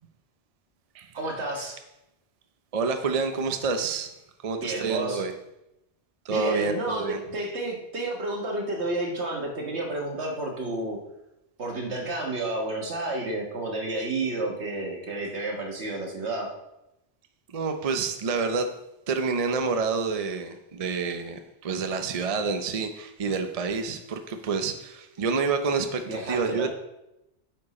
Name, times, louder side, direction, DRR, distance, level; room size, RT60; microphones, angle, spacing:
voice 1, 1.1-1.8 4.6-5.2 6.3-11.0 11.6-16.5 26.0-26.7, right 2 dB, 70° right, 1 dB, 1.6 m, -31 dB
voice 2, 2.7-4.1 4.4-5.3 6.3-7.2 17.5-18.7 19.1-26.7, right 4 dB, 40° right, 7 dB, 0.6 m, -28 dB
9.8 x 4.5 x 4.2 m, 0.89 s
omnidirectional pair, 1.2 m